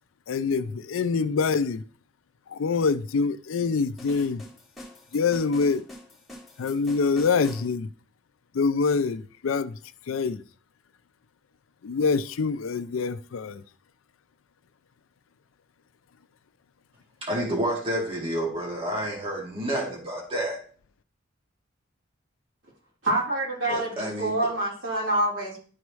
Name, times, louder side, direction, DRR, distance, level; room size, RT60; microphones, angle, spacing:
voice 1, 0.3-1.8 2.5-4.4 5.1-5.9 6.6-7.9 8.5-9.8 10.1-10.4 11.8-13.6, left 4 dB, 85° left, 0.4 m, -25 dB
sound 1, 4.0-7.7, left 1 dB, ahead, 2.6 m, -45 dB
voice 2, 17.2-20.6 23.7-24.5, right 1 dB, 30° right, 2.0 m, -29 dB
voice 3, 23.0-25.6, right 1 dB, 75° right, 3.8 m, -26 dB
11.5 x 4.7 x 3.1 m
head